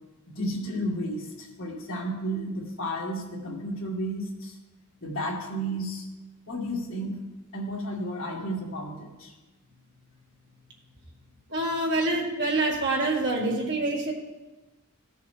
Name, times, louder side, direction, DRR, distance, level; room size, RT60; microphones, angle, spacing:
voice 1, 0.3-4.6 5.0-6.1 6.5-7.2 7.5-9.3, equal, 65° left, -1 dB, 2.0 m, -32 dB
voice 2, 11.5-14.1, right 2 dB, 50° right, -1 dB, 1.8 m, -26 dB
16.5 x 6.7 x 3.4 m, 1.1 s
head